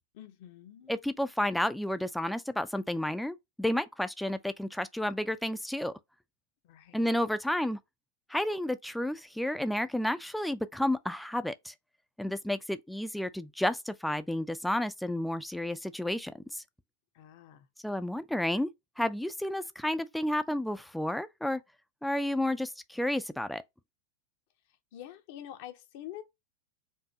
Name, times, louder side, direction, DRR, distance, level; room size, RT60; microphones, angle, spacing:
voice 1, 0.1-1.0 6.6-7.1 17.1-17.7 24.9-26.2, left 12 dB, 50° left, 0.8 m, -46 dB
voice 2, 0.9-5.9 6.9-7.8 8.3-11.7 12.2-16.6 17.8-18.7 19.0-21.6 22.0-23.6, left 1 dB, ahead, 0.4 m, -31 dB
4.6 x 2.6 x 2.9 m
figure-of-eight pair, 90°, 0 cm